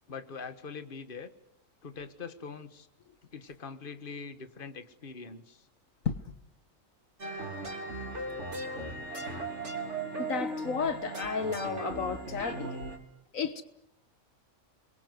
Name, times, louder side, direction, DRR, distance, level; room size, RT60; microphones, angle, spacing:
voice 1, 0.1-1.3 1.8-2.9 3.3-5.7, left 5 dB, 40° left, 1.7 m, -43 dB
sound 1, 7.2-13.0, right 2 dB, 55° right, 3.8 m, -37 dB
voice 2, 10.2-12.8 13.3-13.6, left 6 dB, 75° left, 1.7 m, -32 dB
29.0 x 22.5 x 8.1 m
omnidirectional pair, 1.4 m